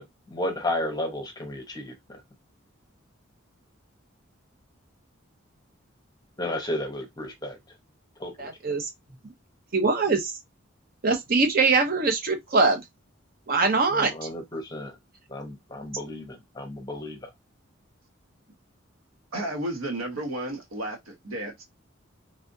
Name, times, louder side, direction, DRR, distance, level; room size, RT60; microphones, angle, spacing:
voice 1, 0.0-2.2 6.4-7.6 8.2-8.5 13.9-15.0 15.3-17.3, left 1 dB, 20° left, 0.8 m, -33 dB
voice 2, 8.4-8.9 9.7-10.3 11.0-12.8 13.5-14.1, right 4 dB, 45° right, 0.7 m, -22 dB
voice 3, 19.3-21.6, right 1 dB, 85° right, 1.0 m, -32 dB
3.3 x 2.4 x 2.6 m
head